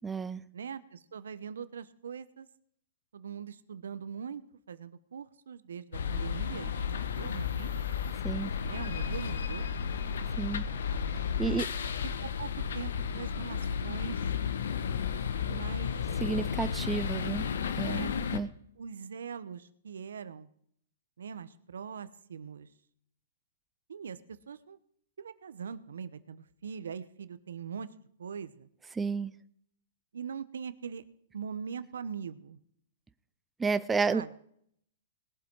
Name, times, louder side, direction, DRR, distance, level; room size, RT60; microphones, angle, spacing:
voice 1, 0.0-0.4 8.2-8.5 10.4-10.6 11.4-11.6 16.2-17.5 17.8-18.5 29.0-29.3 33.6-34.3, right 4 dB, 10° right, 0.4 m, -31 dB
voice 2, 0.5-2.5 3.1-4.4 4.7-7.7 8.6-9.6 11.4-11.7 12.0-14.3 15.4-15.9 17.8-18.2 18.8-20.5 21.2-22.7 23.9-24.8 25.2-27.9 28.2-28.7 30.1-31.0 31.3-32.6 34.1-34.3, right 7 dB, 90° right, 1.0 m, -41 dB
sound 1, 5.9-18.4, left 7 dB, 75° left, 1.2 m, -33 dB
20.0 x 7.6 x 4.7 m
hypercardioid pair, 155°, 0 cm